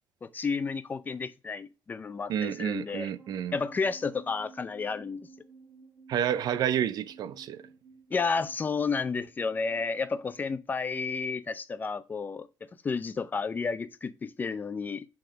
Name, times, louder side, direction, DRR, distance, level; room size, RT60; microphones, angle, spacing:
voice 1, 0.2-3.1 3.5-5.3 8.1-12.5 12.8-15.1, left 4 dB, 25° left, 0.4 m, -31 dB
voice 2, 2.3-3.6 6.1-7.6, right 9 dB, 55° right, 0.4 m, -30 dB
sound 1, 3.2-10.6, right 4 dB, 30° right, 3.0 m, -55 dB
7.8 x 3.6 x 5.0 m
cardioid pair, 165°, 8 cm